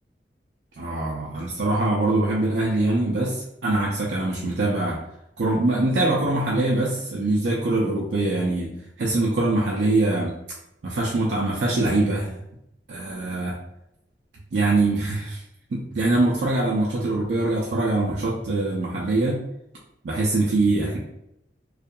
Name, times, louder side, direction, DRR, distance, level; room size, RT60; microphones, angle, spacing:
voice 1, 0.8-5.0 5.4-10.3 10.8-12.3 12.9-13.6 14.5-15.4 15.7-19.4 20.0-21.0, right 2 dB, 75° right, -4 dB, 0.5 m, -23 dB
2.6 x 2.4 x 2.2 m, 0.80 s
head